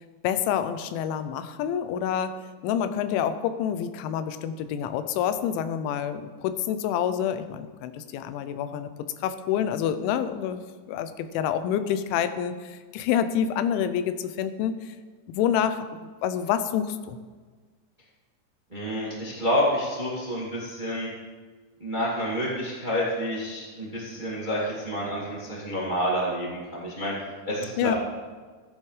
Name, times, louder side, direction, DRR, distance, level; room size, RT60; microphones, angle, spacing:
voice 1, 0.2-8.9 9.2-15.0 15.3-15.8 16.2-17.2 27.8-28.0, left 9 dB, 90° left, 11 dB, 3.1 m, -27 dB
voice 2, 18.7-21.1 21.8-27.1 27.4-27.9, equal, 25° right, -6 dB, 1.1 m, -28 dB
14.5 x 10.5 x 3.3 m, 1.4 s
omnidirectional pair, 5.3 m